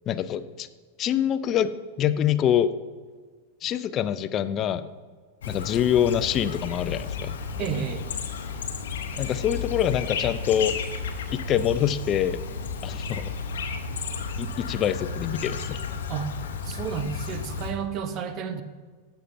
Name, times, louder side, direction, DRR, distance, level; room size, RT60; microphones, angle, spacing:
voice 1, 0.1-0.7 1.0-1.7 2.0-2.7 3.6-4.9 5.5-7.3 9.2-10.7 11.3-12.4 12.8-13.3 14.4-15.8, left 10 dB, 35° left, 13 dB, 0.4 m, -25 dB
Chirp tweet, 5.4-17.7, left 5 dB, 70° left, 0.7 m, -33 dB
voice 2, 7.6-8.1 16.1-16.3 16.6-18.6, right 7 dB, 40° right, 10 dB, 0.8 m, -31 dB
14.0 x 5.7 x 2.6 m, 1.5 s
figure-of-eight pair, 90°, 0 cm